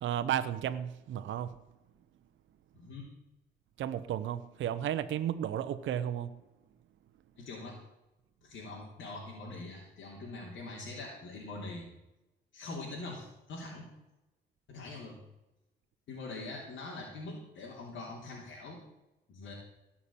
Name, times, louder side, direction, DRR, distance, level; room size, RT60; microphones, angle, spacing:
voice 1, 0.0-1.6 3.8-6.4, right 10 dB, 75° right, 10 dB, 0.9 m, -33 dB
voice 2, 2.7-3.1 7.4-7.8 8.4-11.9 12.5-13.9 14.7-15.2 16.1-18.8 19.3-19.5, left 2 dB, 70° left, -3 dB, 3.2 m, -43 dB
17.0 x 5.9 x 8.7 m, 0.96 s
cardioid pair, 90°, 20 cm